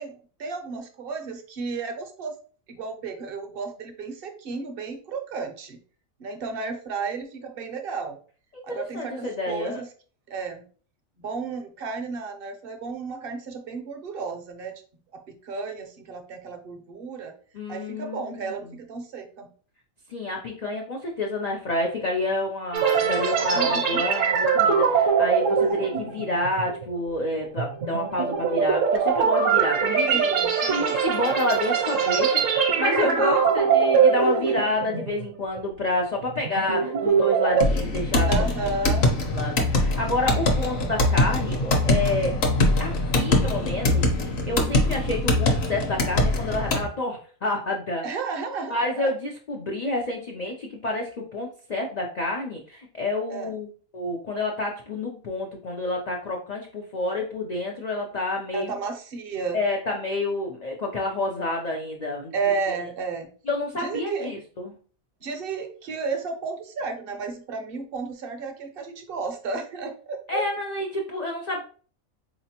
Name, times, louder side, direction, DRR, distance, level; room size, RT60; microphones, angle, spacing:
voice 1, 0.0-2.3 2.7-5.8 6.2-8.2 8.6-9.9 10.3-10.6 11.2-14.7 15.1-17.3 17.7-19.5 23.5-24.0 25.6-25.8 30.1-31.0 32.9-33.5 34.3-34.6 38.3-39.2 48.0-49.1 53.3-53.5 58.5-59.6 62.3-63.3 63.7-64.3 65.2-70.4, right 4 dB, 55° right, 5 dB, 0.7 m, -33 dB
voice 2, 8.5-9.8 17.5-18.4 20.1-30.2 30.7-38.3 39.3-42.4 42.8-48.0 48.7-58.7 59.5-62.3 63.5-64.7 70.3-71.6, left 2 dB, 70° left, 0 dB, 0.4 m, -29 dB
sound 1, 22.7-35.3 35.6-35.8 36.3-37.6, right 6 dB, 70° right, 1.0 m, -22 dB
sound 2, 37.6-46.9, left 2 dB, 55° left, 0.9 m, -23 dB
4.1 x 2.9 x 2.8 m, 0.42 s
omnidirectional pair, 1.5 m